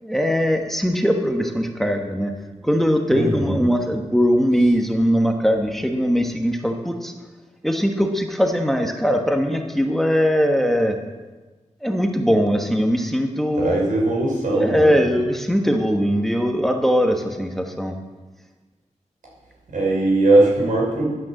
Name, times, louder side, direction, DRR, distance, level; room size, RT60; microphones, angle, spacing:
voice 1, 0.0-2.3 2.6-7.1 7.6-11.0 11.8-13.8 14.5-17.9, equal, ahead, 3 dB, 1.2 m, -20 dB
voice 2, 3.1-3.6 13.5-14.9 19.7-21.1, right 2 dB, 90° right, -3 dB, 5.5 m, -19 dB
12.0 x 9.4 x 7.7 m, 1.2 s
wide cardioid pair, 125°, 13 cm